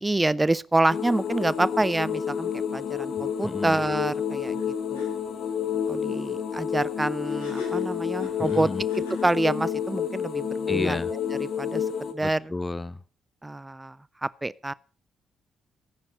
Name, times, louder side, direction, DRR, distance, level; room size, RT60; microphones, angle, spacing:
voice 1, 0.0-5.0 5.9-12.5 13.4-14.7, right 2 dB, 15° right, 0.6 m, -27 dB
sound 1, 0.9-12.1, left 8 dB, 50° left, 1.7 m, -29 dB
voice 2, 3.4-3.8 8.4-8.8 10.7-11.1 12.2-13.0, left 2 dB, 20° left, 0.8 m, -31 dB
sound 2, 4.6-4.7 4.9-5.1 7.3-9.4, left 1 dB, 75° left, 4.3 m, -41 dB
16.5 x 9.7 x 5.4 m
figure-of-eight pair, 40°, 0 cm